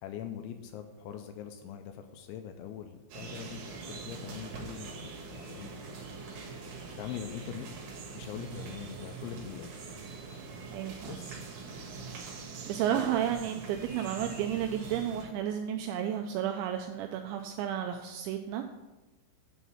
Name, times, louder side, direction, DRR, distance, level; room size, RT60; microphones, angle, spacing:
voice 1, 0.0-5.7 6.3-6.6 7.0-7.7 8.1-9.7 11.1-11.4, left 9 dB, 80° left, 6 dB, 2.8 m, -43 dB
sound 1, 3.1-15.2, right 4 dB, 65° right, 3.0 m, -43 dB
voice 2, 10.7-11.2 12.7-18.7, right 9 dB, 85° right, 5 dB, 2.6 m, -32 dB
9.3 x 4.1 x 7.1 m, 1.1 s
omnidirectional pair, 5.7 m